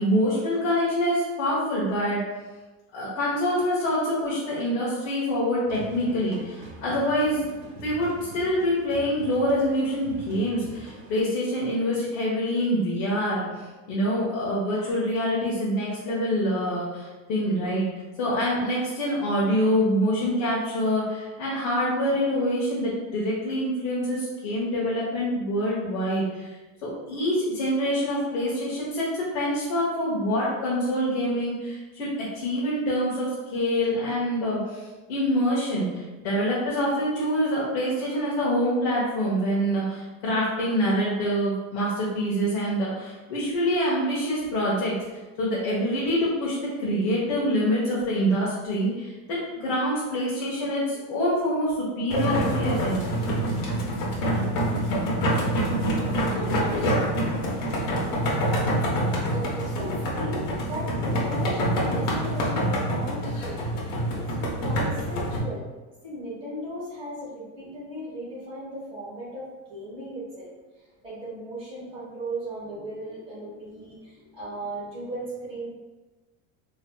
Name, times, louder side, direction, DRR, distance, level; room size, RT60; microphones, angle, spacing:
voice 1, 0.0-2.2 2.9-13.6 13.9-17.9 18.2-26.6 26.8-32.1 32.3-53.0, equal, 60° left, -7 dB, 1.2 m, -26 dB
sound 1, 5.7-11.2, right 1 dB, 30° right, 0.4 m, -43 dB
sound 2, 52.1-65.4, equal, 85° left, 1.2 m, -26 dB
voice 2, 59.3-63.6 64.1-64.3 64.6-65.6 66.0-70.5 70.7-75.6, right 1 dB, 15° right, -9 dB, 1.2 m, -37 dB
4.1 x 3.1 x 2.2 m, 1.2 s
cardioid pair, 180°, 39 cm